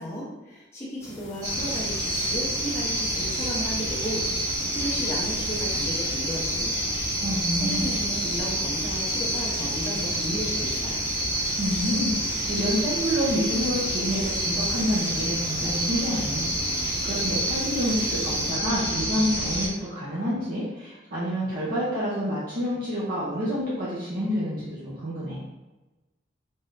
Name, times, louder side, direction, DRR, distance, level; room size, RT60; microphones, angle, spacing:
voice 1, 0.0-6.8 7.6-11.0, equal, 15° left, -10 dB, 0.9 m, -34 dB
sound 1, 1.0-18.5, left 2 dB, 80° left, 0.6 m, -43 dB
sound 2, 1.4-19.7, right 1 dB, 20° right, 1.3 m, -28 dB
voice 2, 7.2-7.9 11.6-25.4, equal, 50° right, -9 dB, 0.7 m, -28 dB
3.6 x 2.7 x 3.2 m, 1.1 s
head